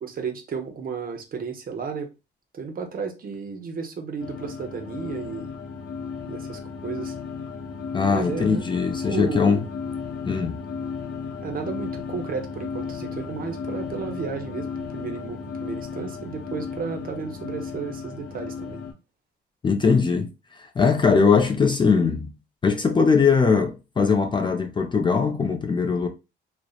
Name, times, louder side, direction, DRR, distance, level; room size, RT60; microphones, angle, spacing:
voice 1, 0.0-2.1 2.5-5.5 6.3-7.1 8.0-8.6 9.0-9.6 11.4-18.8, right 5 dB, 45° right, 0.6 m, -33 dB
sound 1, 4.2-18.9, left 5 dB, 75° left, 0.6 m, -34 dB
voice 2, 7.9-9.6 10.3-10.6 19.6-22.3 22.6-26.1, left 5 dB, 25° left, 0.3 m, -21 dB
2.7 x 2.0 x 2.3 m
cardioid pair, 90°, 20 cm